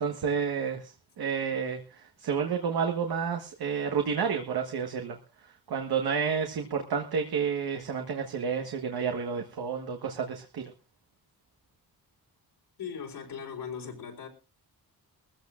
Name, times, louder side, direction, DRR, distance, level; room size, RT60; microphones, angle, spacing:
voice 1, 0.0-5.2 5.7-10.7, right 6 dB, 70° right, 1.5 m, -30 dB
voice 2, 12.8-14.3, left 7 dB, 80° left, 4.0 m, -39 dB
22.0 x 15.0 x 2.5 m
wide cardioid pair, 140°, 39 cm